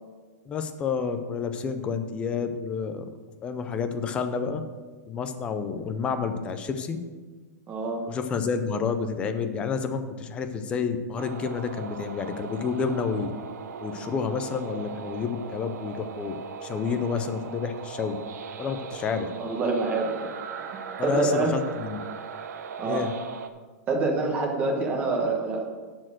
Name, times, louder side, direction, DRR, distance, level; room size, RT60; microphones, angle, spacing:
voice 1, 0.5-3.1 3.4-4.6 5.1-7.0 8.1-13.3 13.8-16.4 16.6-18.2 18.6-19.3 21.0-22.0 22.8-23.1, left 5 dB, 10° left, 8 dB, 0.4 m, -29 dB
voice 2, 7.7-8.0 19.1-20.3 21.0-21.5 22.8-23.0 23.9-25.6, right 3 dB, 20° right, 0 dB, 1.3 m, -26 dB
sound 1, 11.2-23.5, right 6 dB, 70° right, 0.8 m, -39 dB
11.0 x 4.4 x 7.6 m, 1.4 s
supercardioid pair, 175°, 9 cm